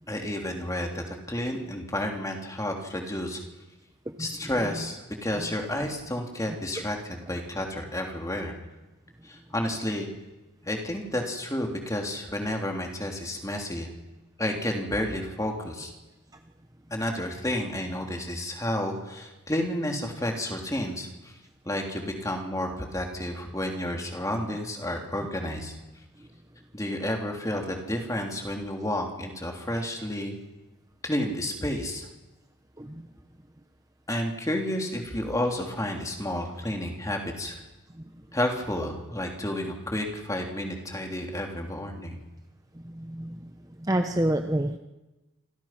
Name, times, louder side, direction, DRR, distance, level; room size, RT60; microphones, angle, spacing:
voice 1, 0.1-3.4 4.2-8.5 9.2-10.1 10.7-13.9 14.4-15.9 16.9-21.3 21.7-25.8 26.7-30.4 31.0-32.1 34.1-37.6 38.3-42.2, left 1 dB, 15° left, 2 dB, 3.5 m, -31 dB
voice 2, 43.9-44.8, right 1 dB, 15° right, 5 dB, 0.9 m, -26 dB
28.0 x 25.5 x 6.1 m, 1.1 s
head